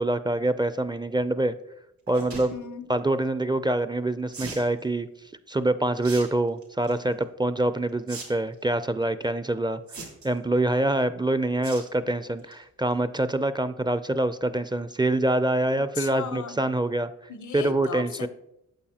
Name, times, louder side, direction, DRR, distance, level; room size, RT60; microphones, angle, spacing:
voice 1, 0.0-1.5 2.1-2.5 2.9-5.1 5.5-9.8 10.2-17.1 17.5-18.3, right 1 dB, 15° right, 12 dB, 0.4 m, -25 dB
sound 1, 2.1-2.5 4.3-4.7 6.0-6.2 6.6-6.9 8.1-8.2 8.5-8.6 9.9-10.4 11.6-11.9 12.3-12.5 12.9-13.0 13.2-13.3, right 3 dB, 75° right, 3.1 m, -38 dB
voice 2, 2.5-2.9 15.8-16.6 17.3-18.3, left 6 dB, 75° left, 12 dB, 0.8 m, -36 dB
8.8 x 7.0 x 2.9 m, 0.82 s
cardioid pair, 50°, 30 cm